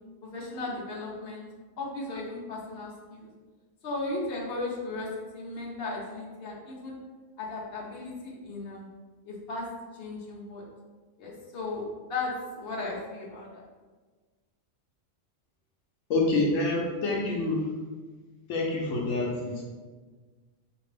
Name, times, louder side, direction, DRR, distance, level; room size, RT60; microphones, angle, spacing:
voice 1, 0.2-1.5 1.8-3.3 3.8-6.9 7.4-8.9 9.3-9.7 9.9-10.6 11.2-13.6, left 2 dB, 50° left, -4 dB, 1.1 m, -36 dB
voice 2, 16.1-17.7 18.5-19.6, left 2 dB, 80° left, -2 dB, 1.0 m, -27 dB
4.3 x 2.8 x 3.3 m, 1.4 s
omnidirectional pair, 1.3 m